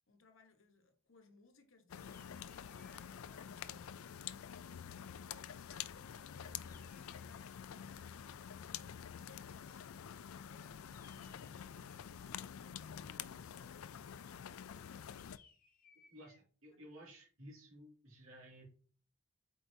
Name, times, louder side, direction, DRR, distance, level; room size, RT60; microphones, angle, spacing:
voice 1, 0.1-4.1 5.1-8.4 9.3-13.8 16.7-16.8, left 3 dB, 65° left, 1.1 m, -66 dB
sound 1, 1.9-15.4, left 8 dB, 80° left, 0.4 m, -48 dB
sound 2, 2.0-3.2 6.6-7.6 10.8-12.1 15.2-16.4, left 5 dB, 40° left, 1.0 m, -67 dB
voice 2, 16.1-18.7, equal, 80° right, 2.4 m, -55 dB
7.9 x 4.7 x 2.7 m
head